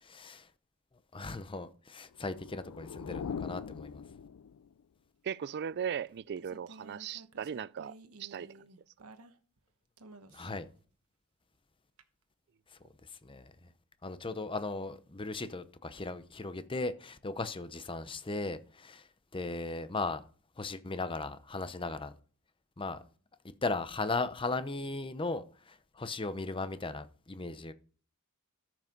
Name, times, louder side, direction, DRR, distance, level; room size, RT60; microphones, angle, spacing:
voice 1, 0.0-0.5 1.1-4.0 10.3-10.7 13.2-13.5 14.0-19.1 19.3-20.2 20.6-22.1 22.8-23.0 23.6-27.7, left 3 dB, 25° left, 0.8 m, -37 dB
sound 1, 2.1-4.8, left 6 dB, 80° left, 0.4 m, -42 dB
voice 2, 5.2-8.5, right 8 dB, 50° right, 0.4 m, -38 dB
sound 2, 5.7-9.6 10.0-10.7 12.0-12.1, right 2 dB, 75° right, 1.1 m, -54 dB
13.5 x 6.2 x 5.3 m
head